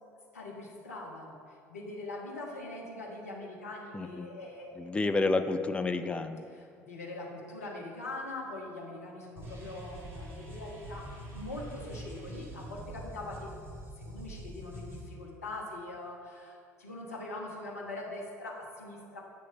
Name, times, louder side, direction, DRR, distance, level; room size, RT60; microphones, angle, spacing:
voice 1, 0.3-4.9 6.5-13.5 14.0-19.2, left 2 dB, 80° left, -3 dB, 1.0 m, -42 dB
voice 2, 3.9-4.3 4.8-6.4, left 3 dB, 15° left, 8 dB, 0.4 m, -30 dB
sound 1, 9.4-15.1, right 1 dB, 30° right, 1.6 m, -44 dB
9.3 x 3.1 x 5.4 m, 2.3 s
figure-of-eight pair, 60°, 8 cm